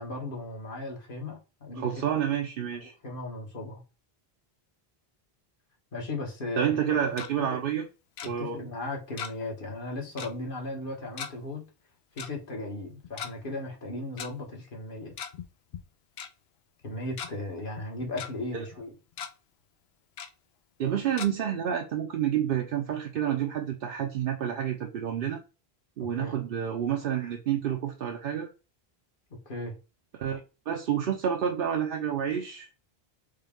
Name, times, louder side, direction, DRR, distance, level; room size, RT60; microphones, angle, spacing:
voice 1, 0.0-2.2 2.7-3.8 5.9-7.0 7.5-7.6 8.2-11.7 12.1-15.1 16.8-18.9 26.0-26.4 29.4-29.7, left 2 dB, 55° left, 1.4 m, -37 dB
voice 2, 1.8-2.9 6.6-7.8 8.3-8.6 18.5-18.6 20.8-25.4 26.0-28.5 30.1-30.4 30.7-32.7, right 9 dB, 65° right, 0.8 m, -29 dB
Tick-tock, 6.9-7.3 8.2-8.3 9.2-9.5 9.8-9.9 10.2-10.4 11.2-11.3 12.2-12.3 13.0-13.3 14.2-14.3 15.0-15.5 15.7-15.8 16.2-16.3 16.8-17.3 17.8-18.3 18.7-18.8 19.1-19.3 20.2-20.3 21.2-21.3, left 8 dB, 80° left, 0.9 m, -38 dB
6.5 x 2.2 x 3.6 m
omnidirectional pair, 1.0 m